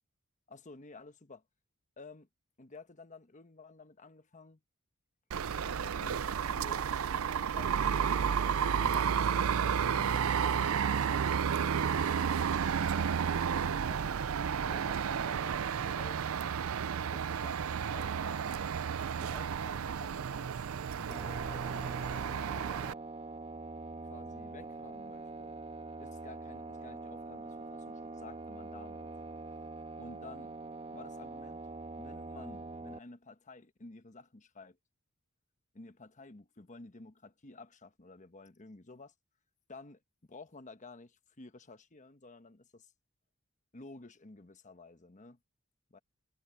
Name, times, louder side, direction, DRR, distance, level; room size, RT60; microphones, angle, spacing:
voice 1, 0.5-1.4 2.0-2.3 2.6-4.6 5.6-6.9 7.4-14.2 14.6-16.2 17.1-18.7 19.2-20.6 20.9-22.0 24.0-25.6 26.0-29.1 30.0-30.5 30.9-31.7 32.0-34.8 35.7-39.1 39.7-40.0 40.3-42.9 43.7-45.4 45.9-46.0, left 3 dB, 35° left, 1.2 m, -52 dB
sound 1, 5.3-22.9, right 7 dB, 90° right, 0.5 m, -32 dB
sound 2, 21.1-33.0, right 3 dB, 30° right, 1.3 m, -44 dB
head